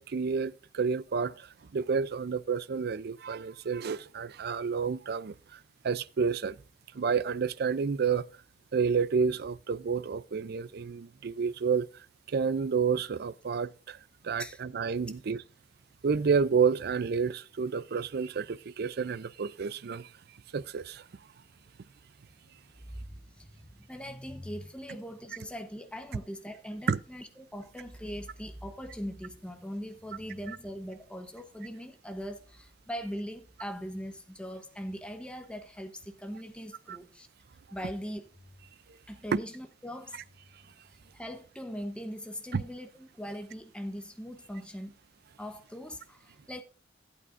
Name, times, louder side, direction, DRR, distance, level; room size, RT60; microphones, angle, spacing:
voice 1, 0.0-5.6 5.8-6.6 6.9-8.3 8.7-11.9 12.3-14.0 14.2-15.4 16.0-20.1 20.5-21.0 26.9-27.0 36.9-37.0 39.3-39.4 42.5-42.6, right 5 dB, 55° right, 0.4 m, -30 dB
voice 2, 23.0-37.3 37.7-38.3 39.1-40.2 41.1-45.0 45.4-46.6, equal, 5° left, 0.9 m, -41 dB
15.5 x 8.6 x 2.6 m
head